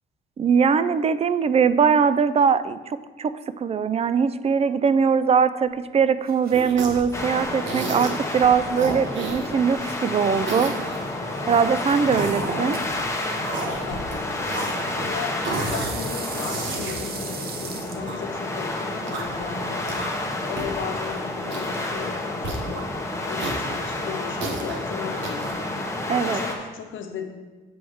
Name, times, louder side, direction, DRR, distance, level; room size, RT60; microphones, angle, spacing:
voice 1, 0.4-10.7 11.5-12.8 26.1-26.4, right 6 dB, 30° right, 14 dB, 0.4 m, -21 dB
sound 1, 5.7-19.9, right 5 dB, 50° right, 0.9 m, -42 dB
sound 2, 6.5-7.1 7.7-8.3 8.8-10.0 10.4-11.0 11.5-13.0 13.4-14.2 14.4-15.1 15.4-15.9 16.3-18.2 18.9-19.4 19.8-20.3 20.6-20.7 21.0-21.1 21.5-22.0 22.4-22.8 23.4-24.8 25.2-25.5, right 3 dB, 70° right, 1.3 m, -32 dB
sound 3, 7.1-26.6, left 2 dB, 15° left, 1.1 m, -30 dB
voice 2, 7.8-8.3 12.4-13.0 13.6-19.9 20.4-22.9 23.2-25.6 26.1-27.3, left 7 dB, 75° left, 5 dB, 0.9 m, -36 dB
7.8 x 3.4 x 6.2 m, 1.3 s
cardioid pair, 90°, 20 cm